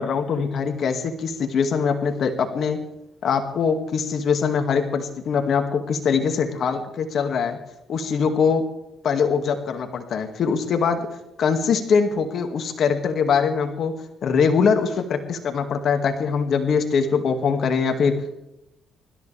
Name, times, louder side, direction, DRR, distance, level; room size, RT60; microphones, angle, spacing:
voice 1, 0.0-2.8 3.2-7.6 7.9-8.6 9.0-11.1 11.4-13.9 14.2-18.2, left 6 dB, 65° left, 5 dB, 2.1 m, -22 dB
25.0 x 14.0 x 3.4 m, 0.84 s
cardioid pair, 90°, 0 cm